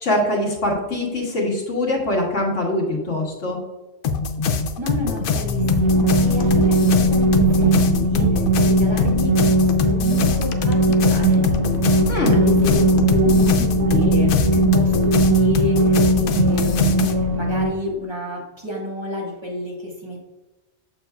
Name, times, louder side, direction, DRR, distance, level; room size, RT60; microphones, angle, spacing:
voice 1, 0.0-3.6 12.1-12.4, left 1 dB, 85° left, -2 dB, 1.8 m, -23 dB
sound 1, 4.0-17.1, left 5 dB, 60° left, 0.6 m, -24 dB
voice 2, 4.8-11.5 12.3-20.3, left 1 dB, 25° right, -3 dB, 1.5 m, -30 dB
sound 2, 5.5-17.7, right 1 dB, 70° right, 1.2 m, -18 dB
7.0 x 6.5 x 2.3 m, 1.1 s
omnidirectional pair, 1.2 m